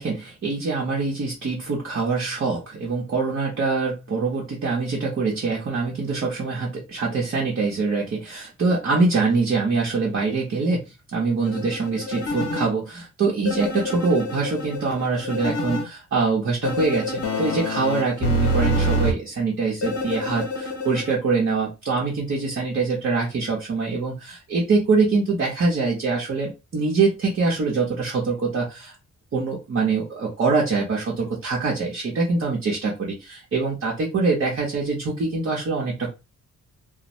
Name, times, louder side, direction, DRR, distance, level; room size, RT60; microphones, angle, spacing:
voice 1, 0.0-28.9 29.3-36.2, right 4 dB, 45° right, -3 dB, 0.8 m, -24 dB
sound 1, 11.4-12.7 13.5-15.8 16.6-19.1 19.8-21.2, left 1 dB, 55° left, 0.9 m, -26 dB
2.6 x 2.1 x 3.1 m, 0.27 s
wide cardioid pair, 145°, 30 cm